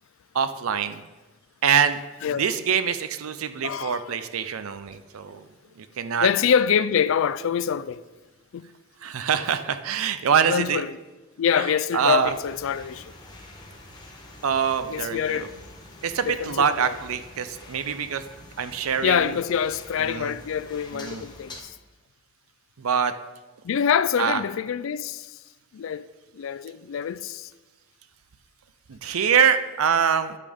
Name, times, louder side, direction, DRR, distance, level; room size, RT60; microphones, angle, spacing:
voice 1, 0.3-1.0 1.6-2.0 2.4-5.4 5.8-6.3 9.0-10.8 11.6-11.7 11.9-12.3 14.4-15.5 16.0-18.2 18.6-19.3 20.1-20.3 20.9-21.2 22.8-23.1 24.2-24.4 28.9-30.4, right 7 dB, 80° right, 0.5 m, -24 dB
voice 2, 3.6-4.2 6.2-8.0 8.5-8.6 10.5-11.0 11.4-13.1 14.8-15.6 16.3-16.9 19.0-21.7 23.6-25.4 25.7-26.1 26.3-27.5, left 8 dB, 65° left, 0.3 m, -25 dB
sound 1, 12.2-21.6, left 2 dB, 20° left, 1.1 m, -46 dB
10.5 x 8.5 x 3.5 m
head